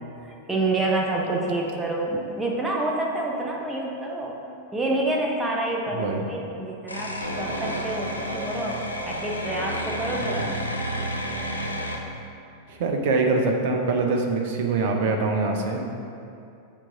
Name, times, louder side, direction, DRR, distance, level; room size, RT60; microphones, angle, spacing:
voice 1, 0.5-4.4 4.7-10.6, right 2 dB, 10° right, -2 dB, 0.7 m, -28 dB
voice 2, 5.9-6.2 10.2-10.5 12.7-15.8, right 3 dB, 50° right, 3 dB, 0.7 m, -24 dB
sound 1, 6.9-12.0, equal, 85° left, 0.5 m, -30 dB
7.2 x 2.6 x 4.9 m, 2.6 s
figure-of-eight pair, 90°, 0 cm